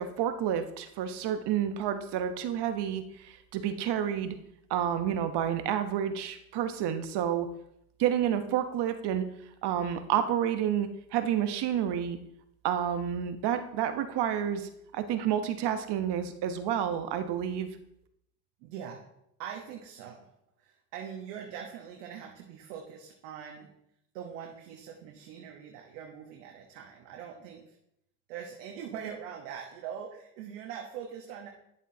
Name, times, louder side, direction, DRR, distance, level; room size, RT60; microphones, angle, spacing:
voice 1, 0.0-4.4 4.7-7.5 8.0-9.2 9.6-12.2 12.6-17.7, right 9 dB, 60° right, 9 dB, 1.1 m, -30 dB
voice 2, 18.6-19.0 19.4-20.3 20.6-23.7 24.1-27.8 28.3-31.5, right 8 dB, 80° right, 1 dB, 1.3 m, -42 dB
11.0 x 7.2 x 2.8 m, 0.78 s
hypercardioid pair, 75°, 46 cm